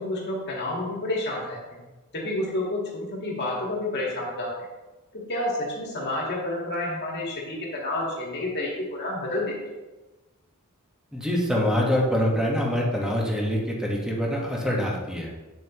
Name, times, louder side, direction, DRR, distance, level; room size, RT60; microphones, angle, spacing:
voice 1, 0.0-1.8 2.1-4.5 5.1-9.5, left 1 dB, 50° left, -3 dB, 2.0 m, -29 dB
voice 2, 11.1-15.3, equal, 5° right, -3 dB, 1.5 m, -25 dB
8.9 x 7.3 x 3.1 m, 1.2 s
head